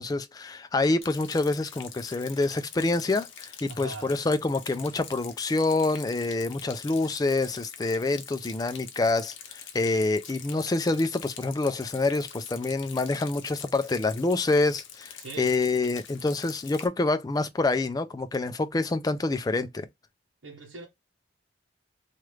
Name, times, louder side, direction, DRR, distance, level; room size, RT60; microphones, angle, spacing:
voice 1, 0.0-19.9, left 3 dB, 20° left, 0.3 m, -27 dB
Rain, 1.0-16.9, left 8 dB, 80° left, 0.7 m, -45 dB
voice 2, 3.7-4.1 15.2-15.6 20.4-20.9, right 3 dB, 85° right, 0.9 m, -41 dB
3.2 x 2.4 x 3.0 m
head